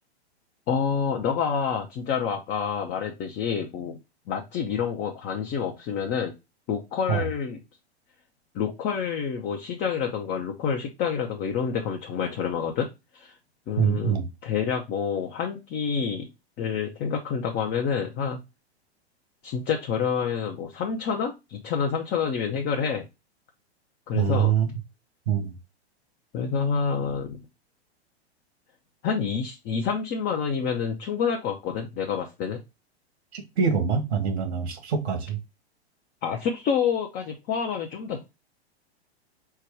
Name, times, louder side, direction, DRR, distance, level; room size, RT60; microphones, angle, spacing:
voice 1, 0.7-4.0 4.3-6.3 6.7-7.6 8.5-12.9 13.1-13.3 13.7-16.3 16.6-18.4 19.4-23.0 24.1-24.5 26.3-27.4 29.0-32.6 36.2-38.2, left 6 dB, 30° left, 0.7 m, -28 dB
voice 2, 13.8-14.3 24.1-24.8 25.3-25.5 33.3-35.4, right 7 dB, 75° right, 1.4 m, -24 dB
4.6 x 2.2 x 4.5 m
hypercardioid pair, 110°, 33 cm